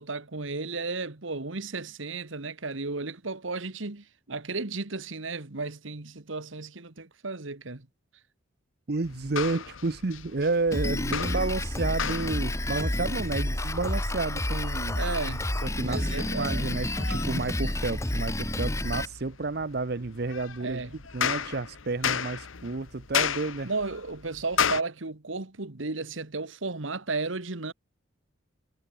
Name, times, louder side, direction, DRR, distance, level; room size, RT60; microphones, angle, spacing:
voice 1, 0.0-7.9 14.9-15.5 15.8-16.7 20.6-20.9 23.7-27.7, right 3 dB, 80° right, 1.6 m, -34 dB
voice 2, 8.9-15.0 15.3-20.8 21.1-23.7, right 3 dB, 50° right, 0.7 m, -31 dB
sound 1, 9.0-24.8, left 7 dB, 85° left, 1.1 m, -35 dB
Drum kit, 10.7-19.1, left 1 dB, 15° left, 1.3 m, -30 dB
head